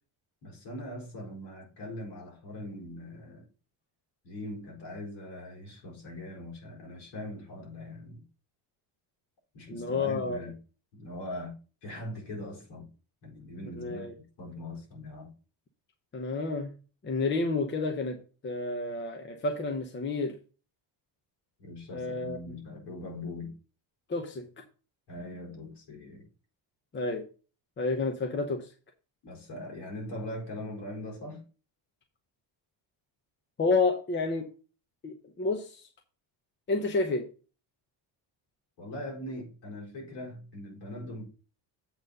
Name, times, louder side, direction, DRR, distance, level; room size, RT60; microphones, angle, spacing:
voice 1, 0.4-3.5 4.2-8.2 9.5-10.5 10.9-11.5 11.8-12.9 13.2-14.1 14.4-15.3 21.6-23.5 25.1-26.3 29.2-31.4 38.8-41.2, left 1 dB, 60° left, 4.7 m, -41 dB
voice 2, 9.7-10.5 13.7-14.1 16.1-16.7 17.0-18.2 18.4-20.4 21.9-22.6 24.1-24.5 26.9-27.3 27.8-28.7 33.6-34.5 35.0-35.9 36.7-37.3, left 3 dB, 25° left, 0.9 m, -30 dB
7.9 x 4.2 x 6.5 m
cardioid pair, 175°, 46 cm